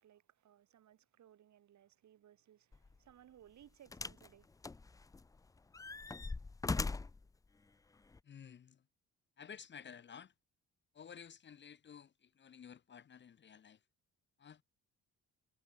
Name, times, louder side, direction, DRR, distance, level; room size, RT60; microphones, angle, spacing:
voice 1, 0.0-4.5, right 11 dB, 70° right, 3.9 m, -63 dB
sound 1, 2.7-2.9 3.9-4.3 4.6-5.3 5.7-7.2 8.1-8.2, left 3 dB, 10° left, 0.4 m, -40 dB
voice 2, 8.2-8.8 9.4-10.3 10.9-13.8 14.4-14.6, left 7 dB, 40° left, 0.7 m, -53 dB
cardioid pair, 90°, 30 cm